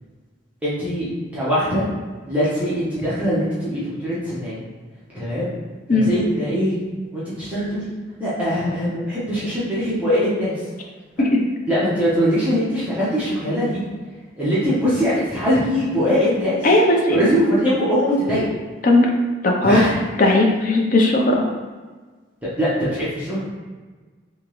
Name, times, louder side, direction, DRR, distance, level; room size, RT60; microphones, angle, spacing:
voice 1, 0.6-1.9 2.2-4.6 5.1-5.5 5.9-6.8 7.1-7.9 8.2-10.6 11.7-13.8 14.4-16.6 17.1-18.4 19.6-20.3 22.6-23.4, equal, 5° right, -11 dB, 0.8 m, -22 dB
voice 2, 16.6-17.2 18.8-19.1 19.4-19.9 20.2-21.4, left 2 dB, 40° left, 0 dB, 0.5 m, -16 dB
3.4 x 2.9 x 3.0 m, 1.4 s
head